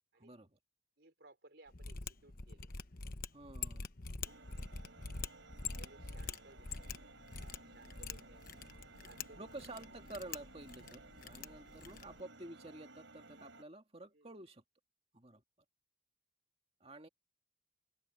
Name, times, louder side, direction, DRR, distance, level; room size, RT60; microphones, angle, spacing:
voice 1, 0.2-0.6 3.3-3.9 9.4-14.6 15.1-15.4 16.8-17.1, right 2 dB, 30° right, 1.9 m, -50 dB
voice 2, 1.0-2.7 4.2-4.4 5.7-7.1 7.3-8.4 9.0-9.5 14.1-14.3, right 2 dB, 60° right, 5.2 m, -61 dB
Mechanisms, 1.7-12.2, left 5 dB, 50° left, 1.1 m, -46 dB
sound 1, 4.2-13.6, right 3 dB, 80° right, 4.7 m, -58 dB
head